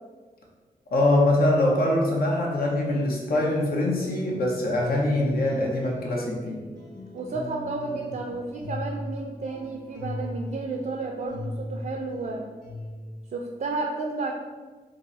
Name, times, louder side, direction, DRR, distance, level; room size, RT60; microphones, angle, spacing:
voice 1, 0.9-6.6, left 1 dB, 75° left, -2 dB, 0.8 m, -23 dB
sound 1, 5.0-13.3, left 1 dB, 55° left, 1.4 m, -39 dB
voice 2, 7.1-12.5 13.3-14.3, right 3 dB, 55° right, 2 dB, 0.4 m, -32 dB
2.7 x 2.5 x 4.0 m, 1.4 s
cardioid pair, 50°, 16 cm